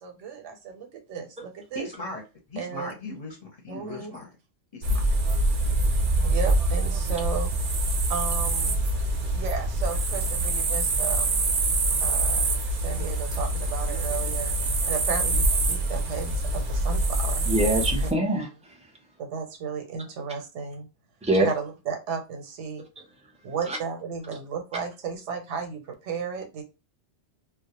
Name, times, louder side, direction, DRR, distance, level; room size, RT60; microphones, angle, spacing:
voice 1, 0.0-1.9 2.6-2.9 3.7-4.2 6.2-7.5 8.1-8.8 9.3-11.4 12.0-14.5 14.9-17.5 18.0-18.1 19.2-20.9 21.4-22.8 23.4-26.6, right 6 dB, 90° right, 1.0 m, -34 dB
voice 2, 1.7-2.2 2.5-4.3 4.7-5.0, left 2 dB, 40° left, 0.7 m, -37 dB
sound 1, 4.8-18.1, right 2 dB, 55° right, 0.6 m, -25 dB
voice 3, 17.5-18.5 21.3-21.5, right 1 dB, 10° right, 0.4 m, -23 dB
2.3 x 2.1 x 2.8 m
omnidirectional pair, 1.2 m